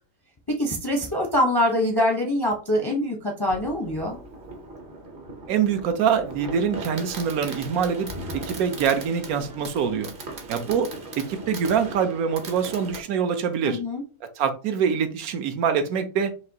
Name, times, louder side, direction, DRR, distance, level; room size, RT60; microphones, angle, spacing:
voice 1, 0.5-4.2 13.6-14.0, left 1 dB, 30° left, 0 dB, 0.5 m, -24 dB
Fireworks, 3.5-13.0, right 2 dB, 45° right, 0.8 m, -38 dB
voice 2, 5.5-10.1 10.5-10.9 11.2-13.8 14.4-16.3, right 7 dB, 75° right, 8 dB, 1.1 m, -24 dB
4.9 x 3.0 x 2.8 m, 0.35 s
omnidirectional pair, 1.6 m